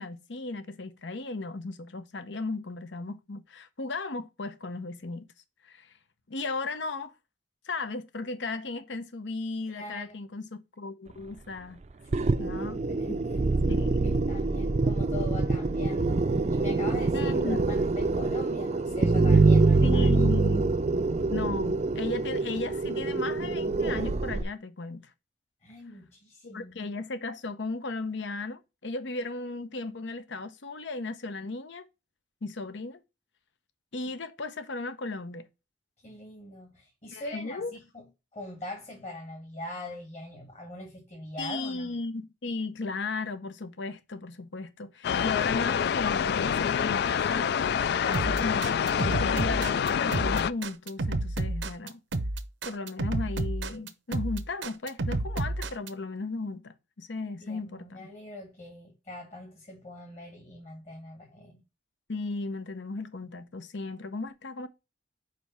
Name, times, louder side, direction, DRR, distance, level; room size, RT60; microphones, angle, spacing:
voice 1, 0.0-5.3 5.6-5.9 6.3-7.1 7.7-11.8 12.4-12.8 13.1-13.2 13.7-14.2 17.1-17.7 19.8-20.7 21.3-25.1 26.4-31.8 32.4-33.0 33.9-35.5 37.1-37.8 41.4-47.6 48.1-52.0 52.6-58.1 62.1-64.7, left 3 dB, 80° left, 0.8 m, -36 dB
voice 2, 9.7-10.2 12.1-16.2 16.5-20.3 25.6-27.0 36.0-38.0 38.3-41.9 48.0-48.4 57.4-61.6, left 2 dB, 40° left, 1.7 m, -42 dB
sound 1, 12.1-24.4, right 3 dB, 40° right, 0.4 m, -25 dB
sound 2, 45.0-50.5, left 7 dB, 60° left, 0.3 m, -27 dB
sound 3, 48.1-55.9, right 2 dB, 85° right, 0.8 m, -30 dB
5.1 x 4.7 x 5.6 m
head